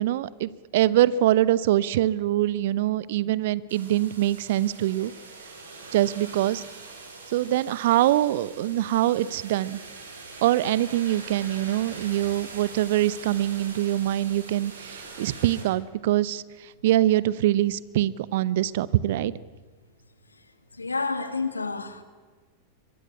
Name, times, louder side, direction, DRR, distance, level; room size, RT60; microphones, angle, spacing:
voice 1, 0.0-5.1 5.9-6.6 7.3-9.8 10.4-19.3, right 14 dB, 55° right, 0.9 m, -24 dB
sound 1, 3.7-15.6, right 3 dB, 70° right, 5.7 m, -43 dB
voice 2, 20.8-22.0, left 4 dB, 80° left, 2.1 m, -29 dB
24.5 x 22.0 x 8.4 m
figure-of-eight pair, 90°, 0 cm